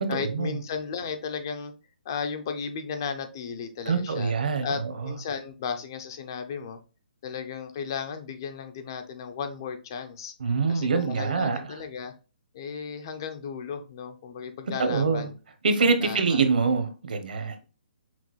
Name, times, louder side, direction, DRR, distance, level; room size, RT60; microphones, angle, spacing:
voice 1, 0.1-1.7 2.1-4.3 4.6-6.8 7.2-10.3 10.7-12.1 12.5-15.4 16.0-16.4, left 6 dB, 25° left, 7 dB, 0.4 m, -35 dB
voice 2, 3.9-4.7 10.4-11.6 14.8-15.3 15.6-17.5, right 4 dB, 60° right, 9 dB, 0.8 m, -24 dB
5.8 x 2.3 x 3.0 m, 0.34 s
hypercardioid pair, 175°, 5 cm